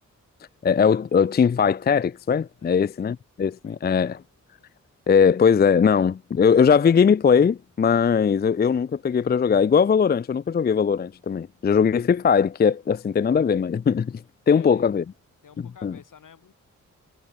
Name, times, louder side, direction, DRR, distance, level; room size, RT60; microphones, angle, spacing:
voice 1, 0.6-4.2 5.1-15.0 15.8-15.9, left 6 dB, 30° left, 0.4 m, -20 dB
voice 2, 2.6-2.9 3.6-4.1 14.5-15.0 15.4-16.5, left 7 dB, 80° left, 7.5 m, -50 dB
wide cardioid pair, 130°, 31 cm